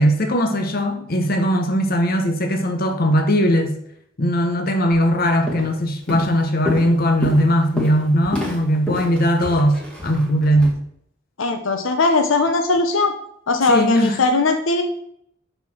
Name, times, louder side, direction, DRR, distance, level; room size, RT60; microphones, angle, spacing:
voice 1, 0.0-3.7 4.2-10.7 13.7-14.2, equal, 50° left, 1.1 m, -19 dB
Walk footsteps, 4.9-5.1 5.5-5.8 6.1-10.7, left 1 dB, 5° left, 1.9 m, -29 dB
voice 2, 11.4-13.1 13.5-14.8, left 3 dB, 85° left, 0.8 m, -19 dB
6.8 x 6.1 x 4.5 m
head